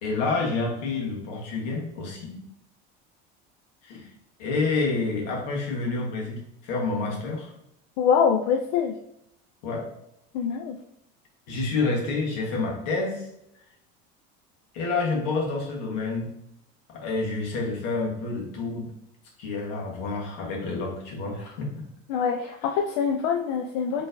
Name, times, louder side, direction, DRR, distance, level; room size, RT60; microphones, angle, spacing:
voice 1, 0.0-2.4 3.8-4.1 4.4-7.5 9.6-9.9 11.5-13.3 14.7-16.3 16.9-18.9 19.4-21.7, left 3 dB, 90° left, -1 dB, 1.4 m, -28 dB
voice 2, 8.0-9.0 10.3-10.8 22.1-24.1, left 7 dB, 75° left, 4 dB, 0.4 m, -24 dB
4.3 x 3.2 x 2.6 m, 0.79 s
cardioid pair, 165°, 21 cm